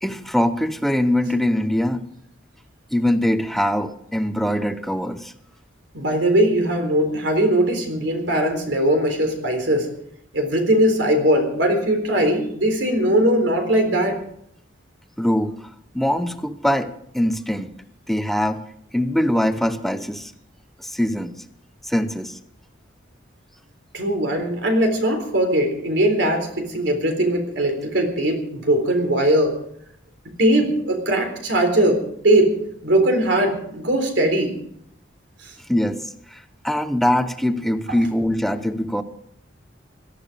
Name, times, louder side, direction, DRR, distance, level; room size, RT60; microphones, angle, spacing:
voice 1, 0.0-2.0 2.9-5.3 15.2-15.7 15.9-17.7 18.1-18.6 18.9-20.3 20.8-21.3 21.8-22.4 35.7-39.0, left 1 dB, ahead, 9 dB, 0.8 m, -22 dB
voice 2, 5.9-9.9 10.3-14.2 23.9-29.5 30.4-32.5 32.8-34.6 35.4-35.5, right 1 dB, 65° right, 4 dB, 3.9 m, -20 dB
17.5 x 13.0 x 5.1 m, 0.70 s
head